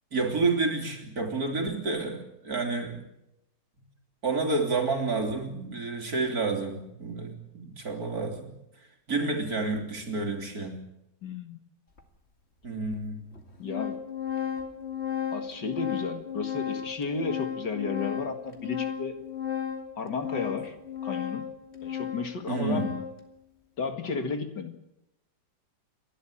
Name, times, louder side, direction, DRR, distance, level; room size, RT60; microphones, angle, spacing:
voice 1, 0.1-3.0 4.2-8.5 9.1-10.8 12.6-13.2 22.5-23.0, right 3 dB, 50° right, 3 dB, 3.7 m, -29 dB
voice 2, 11.2-11.6 13.6-14.0 15.3-19.2 20.0-20.7 21.0-21.5 21.8-22.9 23.8-24.8, left 4 dB, 65° left, 7 dB, 2.6 m, -33 dB
Organ, 12.0-12.1 12.9-13.0 13.3-23.2, left 8 dB, 35° left, 2.5 m, -34 dB
30.0 x 12.0 x 8.8 m, 0.86 s
omnidirectional pair, 2.1 m